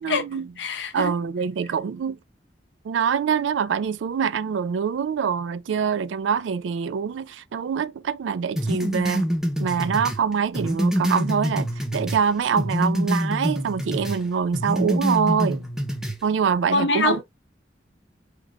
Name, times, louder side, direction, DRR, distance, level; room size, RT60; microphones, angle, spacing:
voice 1, 0.0-0.5 0.9-2.2 2.8-9.3 9.6-15.7 16.2-17.2, right 6 dB, 85° right, 0.3 m, -25 dB
voice 2, 0.6-1.1 16.7-17.2, left 3 dB, 75° left, 0.7 m, -24 dB
sound 1, 8.6-12.2 12.6-14.2 14.5-16.2, equal, 5° right, 0.6 m, -26 dB
4.0 x 3.1 x 2.3 m
head